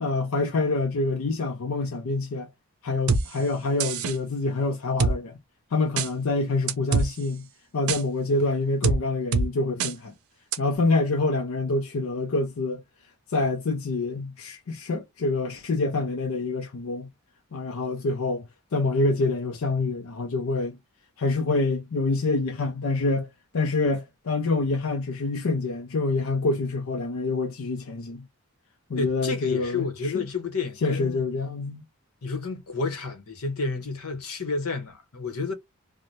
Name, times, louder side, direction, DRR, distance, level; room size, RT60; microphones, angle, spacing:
voice 1, 0.0-2.5 2.8-5.4 5.7-7.5 7.7-10.1 10.6-12.8 13.3-17.1 17.5-20.8 21.2-23.3 23.5-28.2 28.9-30.2 30.8-31.8, left 3 dB, 65° left, 0.5 m, -26 dB
sound 1, 3.1-3.2 3.8-4.2 5.0-5.1 6.0-6.1 6.7-7.1 7.9-8.0 8.8-9.0 9.3-9.5 9.8-9.9 10.5-10.6, right 4 dB, 80° right, 0.5 m, -23 dB
voice 2, 28.9-31.3 32.2-35.5, left 4 dB, 90° left, 0.9 m, -30 dB
2.6 x 2.1 x 3.0 m
head